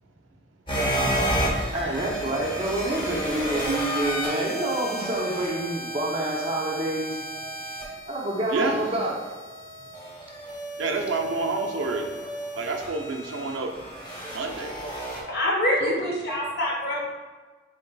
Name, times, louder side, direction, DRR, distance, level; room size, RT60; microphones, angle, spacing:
sound 1, 0.7-15.2, right 1 dB, 25° left, 0.7 m, -32 dB
voice 1, 1.7-7.2 8.1-9.2, right 1 dB, 30° right, -1 dB, 0.6 m, -28 dB
voice 2, 8.5-8.8 10.8-12.2 12.6-13.7 14.3-14.7 15.8-16.0, right 3 dB, 80° right, 3 dB, 0.5 m, -28 dB
voice 3, 15.3-17.1, left 1 dB, 55° left, -3 dB, 0.9 m, -25 dB
3.8 x 3.8 x 2.2 m, 1.3 s
head